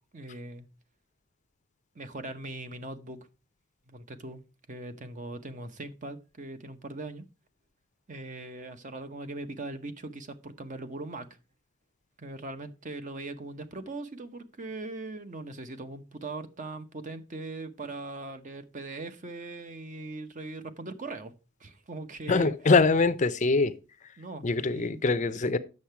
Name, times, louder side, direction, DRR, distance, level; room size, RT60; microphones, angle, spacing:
voice 1, 0.1-0.7 1.9-3.2 3.9-4.4 4.7-7.2 8.1-11.3 12.2-21.3 21.6-22.5 24.2-25.0, right 2 dB, 40° right, 0.8 m, -40 dB
voice 2, 22.3-23.7 24.4-25.6, left 3 dB, 35° left, 0.5 m, -23 dB
8.5 x 6.6 x 4.6 m
head